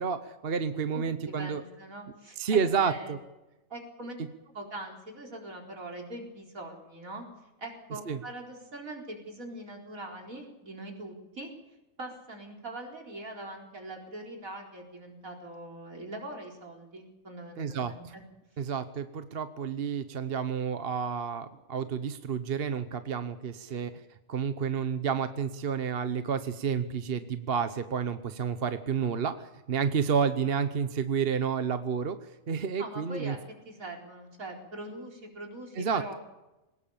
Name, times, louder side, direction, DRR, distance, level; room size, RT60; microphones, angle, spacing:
voice 1, 0.0-1.6 2.4-3.2 8.1-8.2 17.6-17.9 18.6-23.9 24.3-32.2 32.5-33.4 35.8-36.0, right 6 dB, 45° right, 10 dB, 1.1 m, -30 dB
voice 2, 0.9-3.1 3.7-4.2 4.5-7.3 7.6-11.5 12.0-18.2 23.7-23.8 32.8-33.4 33.6-36.2, right 1 dB, 70° right, 1 dB, 4.8 m, -42 dB
21.5 x 19.0 x 7.1 m, 1.0 s
omnidirectional pair, 1.5 m